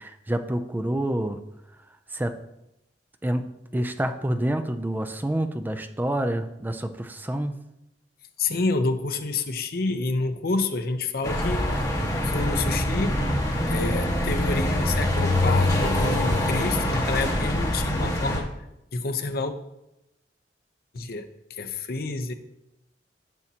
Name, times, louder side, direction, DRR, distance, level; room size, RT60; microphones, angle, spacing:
voice 1, 0.0-1.4 2.1-2.3 3.2-3.4 3.7-7.5, right 1 dB, 10° right, 8 dB, 0.4 m, -27 dB
voice 2, 8.4-11.8 12.2-13.2 13.7-18.5 18.9-19.6 20.9-22.3, left 3 dB, 60° left, 7 dB, 0.7 m, -28 dB
sound 1, 11.2-18.4, left 1 dB, 20° left, 1.5 m, -24 dB
10.5 x 7.3 x 2.9 m, 0.88 s
head